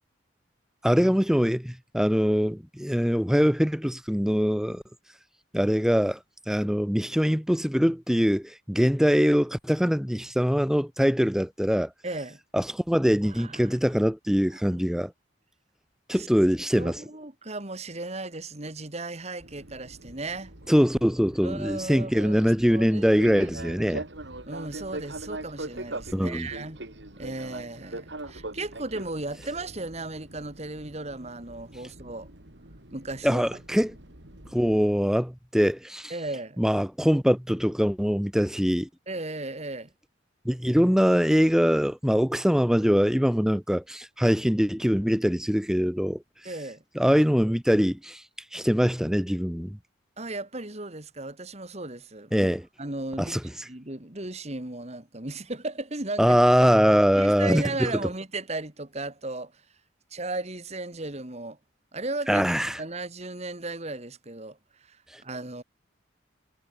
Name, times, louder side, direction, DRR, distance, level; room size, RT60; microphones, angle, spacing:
voice 1, 0.8-4.8 5.5-6.2 6.5-11.9 12.5-15.1 16.1-17.0 20.7-24.0 26.1-26.5 33.2-33.9 34.5-36.1 36.6-38.9 40.4-46.2 46.9-48.2 48.5-49.8 52.3-52.6 53.2-53.4 56.2-57.9 62.3-62.8, equal, 5° right, 1.3 m, -23 dB
voice 2, 12.0-12.4 13.2-13.8 14.5-14.8 16.1-16.3 16.7-20.5 21.4-23.5 23.8-24.0 24.5-26.8 27.2-32.3 32.9-33.4 36.1-36.6 39.1-39.9 46.4-46.8 50.2-52.5 52.8-56.4 57.2-59.5 60.1-61.6 61.9-62.5 62.8-65.0 65.2-65.6, right 2 dB, 35° right, 2.4 m, -36 dB
Fixed-wing aircraft airplane, 19.4-34.8, right 2 dB, 65° right, 3.7 m, -42 dB
head